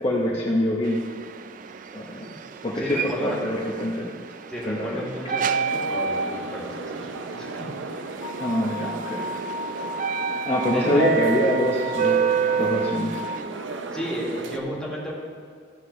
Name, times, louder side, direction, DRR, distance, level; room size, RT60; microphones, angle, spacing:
voice 1, 0.0-1.0 1.9-4.2 4.6-5.0 8.4-9.2 10.4-13.2, left 1 dB, 30° left, -4 dB, 0.8 m, -25 dB
sound 1, 0.8-13.4, right 7 dB, 45° right, 0.3 m, -30 dB
voice 2, 2.8-3.4 4.5-7.8 10.7-11.3 13.9-15.1, equal, 5° left, -6 dB, 1.7 m, -33 dB
sound 2, 5.7-14.6, right 3 dB, 85° right, 0.6 m, -36 dB
sound 3, 8.2-13.4, left 1 dB, 60° left, 0.5 m, -34 dB
14.5 x 6.5 x 3.1 m, 2.1 s
head